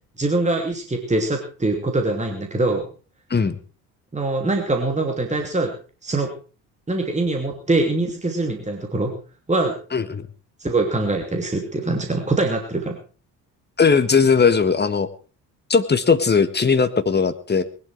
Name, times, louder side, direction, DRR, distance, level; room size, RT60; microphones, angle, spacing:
voice 1, 0.2-2.9 4.1-5.7 6.0-6.3 6.9-9.1 9.5-9.7 10.6-13.0, right 2 dB, 15° right, 3 dB, 3.0 m, -23 dB
voice 2, 9.9-10.3 13.8-15.1 15.7-17.6, left 5 dB, 20° left, 11 dB, 1.7 m, -18 dB
20.5 x 11.5 x 4.8 m, 0.38 s
figure-of-eight pair, 50°, 48 cm